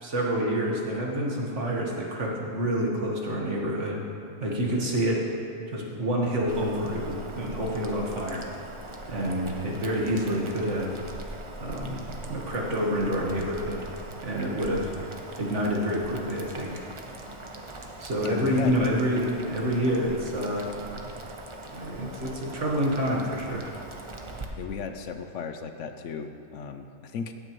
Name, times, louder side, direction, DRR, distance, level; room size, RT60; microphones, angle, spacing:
voice 1, 0.0-4.0 4.4-5.2 5.7-8.4 9.1-10.9 11.6-12.0 12.3-13.9 14.2-14.9 15.4-16.8 18.0-20.7 21.7-23.6, equal, 65° right, -2 dB, 1.8 m, -28 dB
Boiling, 6.5-24.4, right 1 dB, 30° right, 0.7 m, -41 dB
voice 2, 18.2-18.8 24.6-27.3, left 6 dB, 75° left, 6 dB, 0.9 m, -35 dB
17.0 x 9.0 x 3.0 m, 2.5 s
omnidirectional pair, 1.3 m